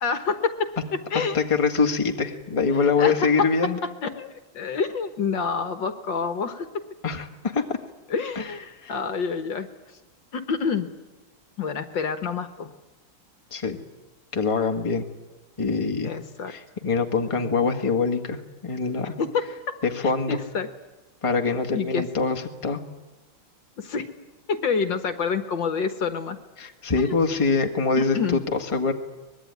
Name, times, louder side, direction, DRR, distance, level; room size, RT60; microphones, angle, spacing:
voice 1, 0.0-1.4 2.7-6.7 8.1-9.7 10.3-10.9 11.6-12.7 16.0-16.5 19.2-19.8 20.0-20.7 21.7-22.1 23.8-24.1 24.5-26.4 27.0-27.2 28.0-28.4, left 5 dB, 60° left, 10 dB, 2.0 m, -28 dB
voice 2, 1.3-3.8 7.0-7.8 8.4-8.5 8.8-8.9 13.5-13.8 14.3-15.0 15.6-16.1 16.5-19.2 19.8-20.4 21.2-22.8 26.6-28.9, left 4 dB, 15° left, 4 dB, 1.7 m, -24 dB
24.0 x 21.0 x 9.6 m, 1.1 s
omnidirectional pair, 2.3 m